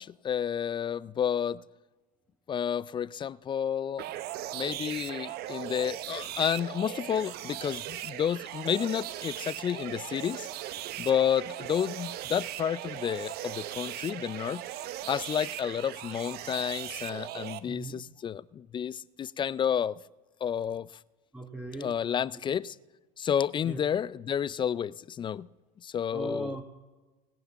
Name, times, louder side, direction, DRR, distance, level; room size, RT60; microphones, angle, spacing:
voice 1, 0.0-1.6 2.5-4.0 4.5-10.5 11.0-14.6 15.1-20.0 20.4-20.9 21.8-22.7 23.2-25.5 25.8-26.6, left 8 dB, 25° left, 0.4 m, -30 dB
sound 1, 4.0-17.6, right 13 dB, 50° right, 1.0 m, -38 dB
voice 2, 17.7-18.0 21.3-22.6 23.6-23.8 26.1-26.7, right 1 dB, 5° right, 1.5 m, -39 dB
19.5 x 7.9 x 7.0 m
hypercardioid pair, 85°, 20 cm